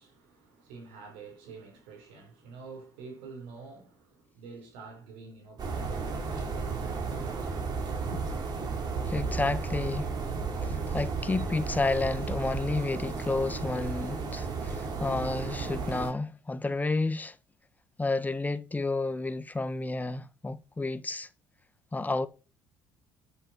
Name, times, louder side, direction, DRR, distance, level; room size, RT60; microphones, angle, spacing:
voice 1, 0.0-8.4, right 3 dB, 85° right, 4.8 m, -47 dB
sound 1, 5.6-16.1, right 4 dB, 55° right, 4.5 m, -33 dB
voice 2, 9.1-10.1 10.6-17.4 18.0-21.3 21.9-22.3, left 3 dB, 20° left, 1.5 m, -31 dB
12.5 x 8.0 x 4.6 m
supercardioid pair, 70°, 9 cm